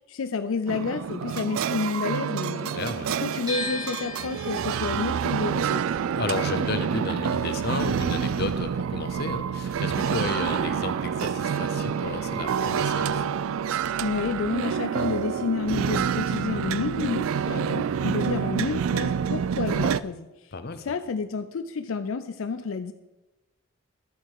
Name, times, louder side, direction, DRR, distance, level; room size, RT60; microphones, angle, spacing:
voice 1, 0.0-2.7 3.1-5.8 14.0-20.5 20.8-22.9, left 4 dB, 75° left, 9 dB, 0.5 m, -30 dB
sound 1, 0.7-20.0, right 7 dB, 80° right, 0.3 m, -27 dB
voice 2, 2.7-3.1 6.1-13.2 20.5-20.8, left 3 dB, 50° left, 9 dB, 0.8 m, -33 dB
sound 2, 3.5-9.5 9.8-11.1, left 2 dB, 20° right, 3.3 m, -39 dB
11.0 x 7.5 x 4.8 m, 1.1 s
head